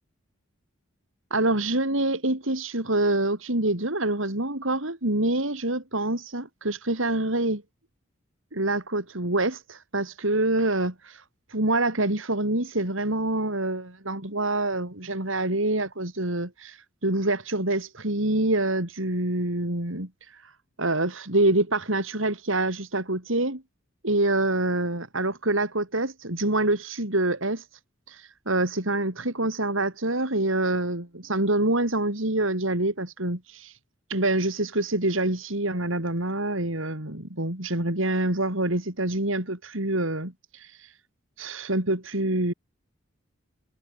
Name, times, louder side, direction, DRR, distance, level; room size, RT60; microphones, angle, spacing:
voice 1, 1.3-7.6 8.5-11.2 11.5-20.5 20.8-23.6 24.0-27.8 28.1-33.8 34.1-41.0 41.4-42.5, right 2 dB, 80° right, 4.5 m, -26 dB
head